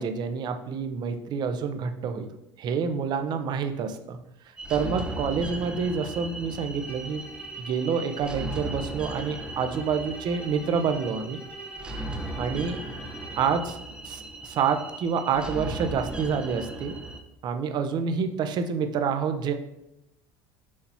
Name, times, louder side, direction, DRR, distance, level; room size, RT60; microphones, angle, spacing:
voice 1, 0.0-4.2 4.7-7.2 7.6-11.4 12.4-12.8 13.4-17.0 17.4-19.5, right 6 dB, 45° right, 7 dB, 0.7 m, -28 dB
sound 1, 4.6-17.2, right 2 dB, 10° right, 0.7 m, -37 dB
Bowed string instrument, 6.8-13.7, equal, 15° left, 1.1 m, -48 dB
6.4 x 2.9 x 5.6 m, 0.85 s
supercardioid pair, 115°, 10 cm